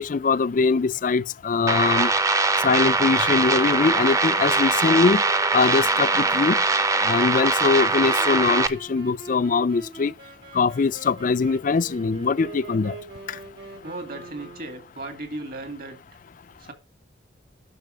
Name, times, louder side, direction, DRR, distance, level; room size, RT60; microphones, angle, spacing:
voice 1, 0.0-2.1 2.6-5.2 5.5-6.6 7.0-10.1 10.5-12.9, left 4 dB, 45° left, 0.4 m, -22 dB
sound 1, 1.7-8.7, right 3 dB, 15° right, 0.7 m, -22 dB
Wind instrument woodwind instrument, 3.4-15.1, right 3 dB, 80° right, 4.9 m, -42 dB
voice 2, 13.8-16.0 16.6-16.7, right 2 dB, 50° right, 2.2 m, -36 dB
11.0 x 6.2 x 5.1 m
head